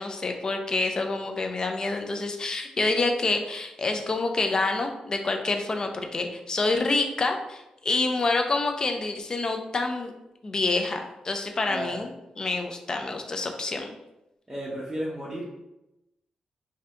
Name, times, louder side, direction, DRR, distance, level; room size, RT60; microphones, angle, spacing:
voice 1, 0.0-10.1 10.4-12.1 12.4-13.9, left 3 dB, 30° left, 4 dB, 0.4 m, -27 dB
voice 2, 14.5-15.4, right 1 dB, 15° right, -8 dB, 0.7 m, -33 dB
2.7 x 2.6 x 3.2 m, 0.91 s
wide cardioid pair, 125°, 2 cm